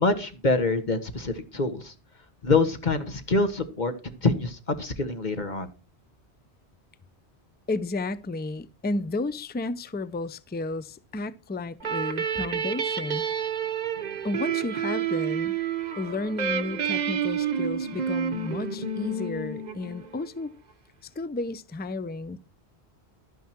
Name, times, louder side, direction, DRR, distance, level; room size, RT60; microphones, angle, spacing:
voice 1, 0.0-1.9 2.4-5.7, left 3 dB, 45° left, 1.5 m, -25 dB
voice 2, 7.7-13.2 14.2-15.5 16.0-20.5 21.0-22.4, left 2 dB, 15° left, 0.3 m, -32 dB
sound 1, 11.8-20.3, right 7 dB, 45° right, 0.9 m, -29 dB
12.0 x 9.3 x 4.4 m
omnidirectional pair, 1.1 m